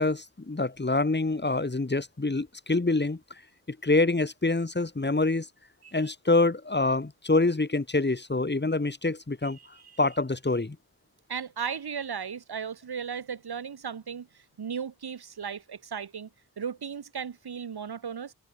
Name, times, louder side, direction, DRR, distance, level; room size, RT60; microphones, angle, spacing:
voice 1, 0.0-3.2 3.7-5.5 5.9-9.6 10.0-10.8, left 2 dB, 30° left, 4.4 m, -26 dB
voice 2, 9.6-10.0 11.3-16.3 16.6-18.3, right 7 dB, 85° right, 3.1 m, -36 dB
open air
wide cardioid pair, 105°, 37 cm